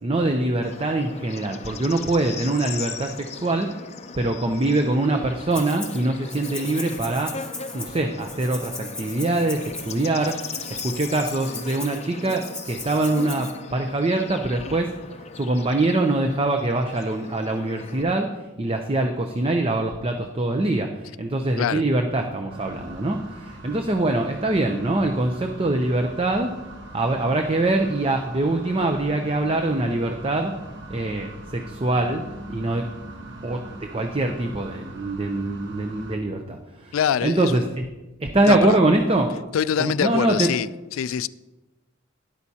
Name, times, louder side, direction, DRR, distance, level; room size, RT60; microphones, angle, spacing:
voice 1, 0.0-3.7 4.2-7.3 7.7-10.4 10.7-14.9 15.3-18.3 18.6-26.5 26.9-30.5 30.9-32.2 32.5-32.9 33.4-37.0 37.2-37.9 38.2-39.4 39.8-40.6, right 2 dB, 25° right, 0.6 m, -23 dB
Bird / Insect, 0.6-18.0, left 5 dB, 30° left, 0.6 m, -39 dB
Rattle (instrument), 5.5-6.0 6.3-13.5, left 3 dB, 5° left, 1.7 m, -38 dB
sound 1, 22.5-36.2, right 1 dB, 60° right, 1.2 m, -41 dB
voice 2, 36.9-37.6 38.5-38.8 39.5-40.7 40.9-41.3, left 8 dB, 80° left, 0.3 m, -24 dB
12.5 x 10.5 x 2.8 m
head